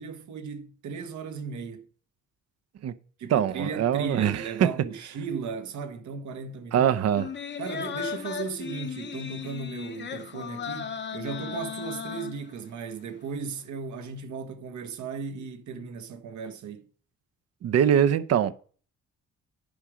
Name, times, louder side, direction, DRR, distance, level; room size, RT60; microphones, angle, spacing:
voice 1, 0.0-1.9 3.2-6.9 7.6-16.9, right 5 dB, 75° right, 1.3 m, -36 dB
voice 2, 3.3-4.7 6.7-7.3 17.6-18.5, right 9 dB, 55° right, 0.7 m, -23 dB
sound 1, 7.1-12.8 13.2-13.3, left 8 dB, 35° left, 0.8 m, -36 dB
10.5 x 5.0 x 5.0 m
cardioid pair, 90°, 30 cm